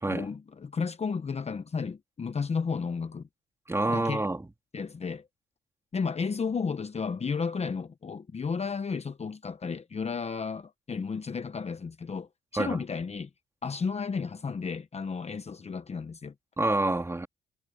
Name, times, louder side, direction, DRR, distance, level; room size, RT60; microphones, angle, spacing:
voice 1, 0.1-3.2 3.9-4.2 4.7-5.3 5.9-13.3 13.6-16.3, left 5 dB, 30° left, 1.0 m, -33 dB
voice 2, 3.7-4.4 12.5-12.8 16.6-17.3, right 2 dB, 15° right, 2.9 m, -27 dB
cardioid pair, 90°, 20 cm